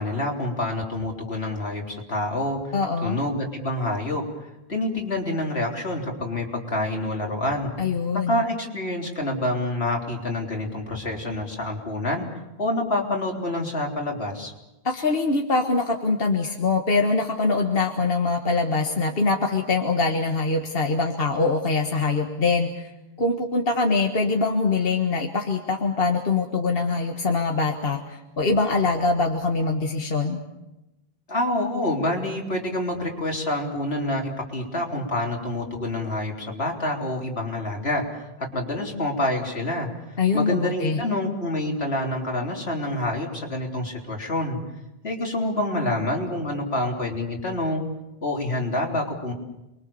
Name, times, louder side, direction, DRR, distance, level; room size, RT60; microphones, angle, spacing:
voice 1, 0.0-2.7 3.0-4.2 4.7-7.7 8.3-12.3 12.6-14.5 31.3-38.0 38.4-39.9 40.3-44.6 45.0-47.8 48.2-49.3, left 1 dB, 90° left, 1 dB, 4.0 m, -27 dB
voice 2, 2.7-3.2 7.8-8.4 14.8-22.9 23.2-30.4 40.2-41.0, left 3 dB, 65° left, 3 dB, 1.8 m, -23 dB
29.0 x 23.0 x 7.1 m, 0.95 s
omnidirectional pair, 1.0 m